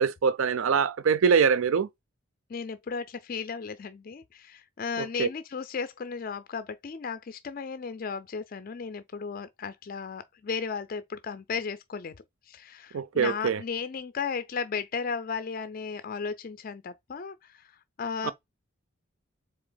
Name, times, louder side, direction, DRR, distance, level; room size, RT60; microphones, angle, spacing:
voice 1, 0.0-1.9 5.0-5.3 12.9-13.6 18.2-18.3, right 6 dB, 75° right, 0.4 m, -24 dB
voice 2, 2.5-12.1 12.5-18.3, left 5 dB, 40° left, 0.4 m, -35 dB
3.8 x 3.4 x 3.8 m
head